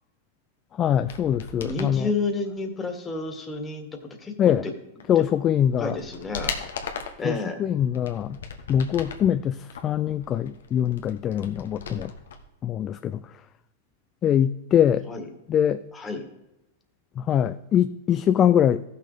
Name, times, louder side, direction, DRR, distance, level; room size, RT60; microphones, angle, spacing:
voice 1, 0.8-2.1 4.4-4.6 5.1-6.0 7.2-8.4 8.7-12.1 12.6-13.2 14.2-15.1 15.5-15.8 17.2-18.8, left 9 dB, 30° left, 12 dB, 0.4 m, -23 dB
sound 1, 1.0-1.9 5.0-5.1 5.6-7.3 7.8-9.3 9.7-12.4 12.6-12.7, left 5 dB, 80° left, 1.4 m, -37 dB
voice 2, 1.5-3.9 4.2-4.7 5.2-5.3 5.8-6.6 7.2-7.6 15.0-15.3 15.9-16.3, left 3 dB, 15° left, 4 dB, 1.9 m, -30 dB
14.5 x 6.6 x 5.1 m, 0.93 s
hypercardioid pair, 115°, 0 cm